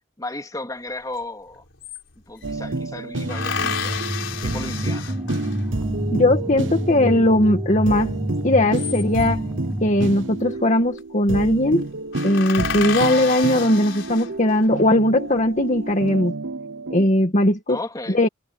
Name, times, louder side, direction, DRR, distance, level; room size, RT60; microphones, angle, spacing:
voice 1, 0.2-1.6 2.3-4.1 4.4-5.1 17.7-18.2, left 2 dB, 20° left, 3.5 m, -34 dB
sound 1, 1.2-1.3 1.5-2.5 3.3-5.8 8.5-9.5 10.6-11.0 11.3-11.4 11.8-11.9 12.1-14.7 15.3-15.9, left 7 dB, 85° left, 4.1 m, -31 dB
sound 2, 2.4-17.1, right 2 dB, 75° right, 1.0 m, -30 dB
sound 3, 3.2-10.5, equal, 5° right, 0.9 m, -29 dB
voice 2, 6.1-8.1 8.4-9.4 9.8-11.8 12.2-16.3 16.9-17.8 18.1-18.3, left 1 dB, 40° left, 2.0 m, -19 dB
head